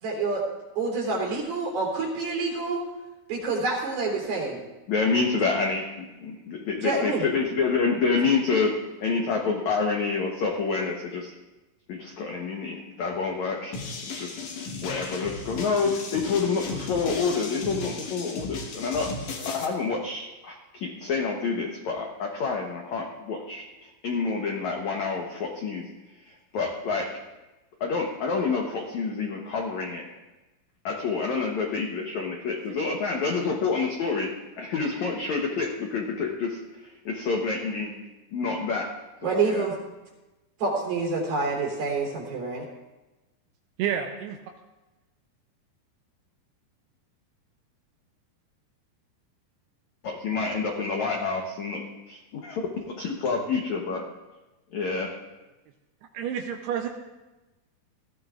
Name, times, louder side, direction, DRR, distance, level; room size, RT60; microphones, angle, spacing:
voice 1, 0.0-0.4 0.8-2.8 3.3-4.6 6.8-7.2 39.2-39.7 40.6-42.7, right 3 dB, 60° right, -1 dB, 4.9 m, -27 dB
voice 2, 4.9-11.3 11.9-13.8 14.1-14.5 14.8-25.8 26.2-27.1 27.8-30.0 30.8-34.3 34.6-37.9 38.3-38.9 39.2-39.7 50.0-54.0 54.7-55.1, left 4 dB, 80° left, 1 dB, 1.6 m, -28 dB
sound 1, 13.7-19.6, left 4 dB, 60° left, 2.4 m, -35 dB
voice 3, 43.8-44.4 56.1-56.9, right 8 dB, 80° right, 3 dB, 2.6 m, -29 dB
20.0 x 14.5 x 2.5 m, 1.1 s
omnidirectional pair, 4.9 m